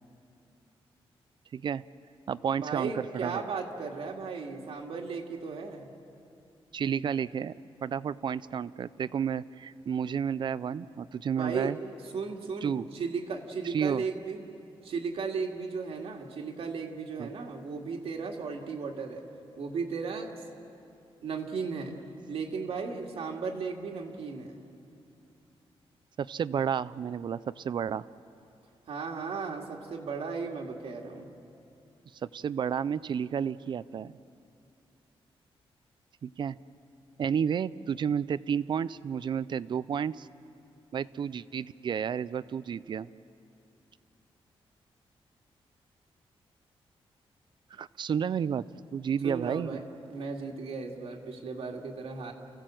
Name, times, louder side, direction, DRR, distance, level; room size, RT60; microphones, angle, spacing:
voice 1, 1.5-1.8 2.3-3.4 6.7-7.5 7.8-11.8 12.6-12.8 13.6-14.0 17.2-17.3 26.2-28.1 32.2-34.1 36.2-36.6 37.2-40.3 40.9-43.1 47.7-48.6 48.9-49.8, right 7 dB, 50° right, 17 dB, 0.5 m, -31 dB
voice 2, 2.6-5.9 11.4-11.7 12.1-14.4 14.8-19.2 19.6-20.3 21.2-21.9 22.3-24.6 28.9-31.3 49.2-52.3, right 5 dB, 75° right, 1 dB, 2.2 m, -35 dB
30.0 x 15.5 x 7.7 m, 2.7 s
wide cardioid pair, 155°, 10 cm